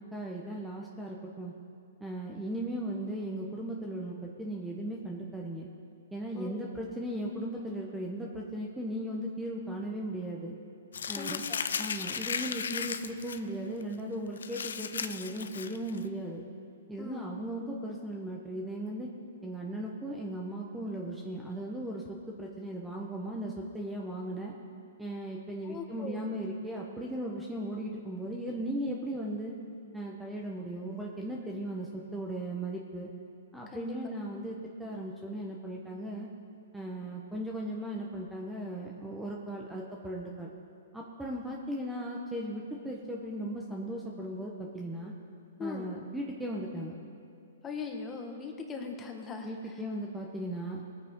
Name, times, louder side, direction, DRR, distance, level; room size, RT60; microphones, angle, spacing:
voice 1, 0.1-1.5 2.0-5.7 6.1-10.5 11.1-11.4 11.8-16.4 16.9-19.1 19.4-24.5 25.0-29.5 29.9-33.1 33.5-36.3 36.7-40.5 40.9-45.1 45.6-47.0 49.4-50.8, right 1 dB, 5° right, -2 dB, 1.0 m, -37 dB
voice 2, 6.3-6.7 11.1-11.6 17.0-17.3 25.6-26.3 33.7-34.0 45.6-46.0 47.6-49.8, left 4 dB, 20° left, 2 dB, 1.4 m, -40 dB
Crumpling crinkling, 10.9-13.4 13.8-13.9 14.4-16.0, left 6 dB, 80° left, 0.6 m, -35 dB
20.5 x 9.1 x 3.7 m, 2.5 s
hypercardioid pair, 140°, 0 cm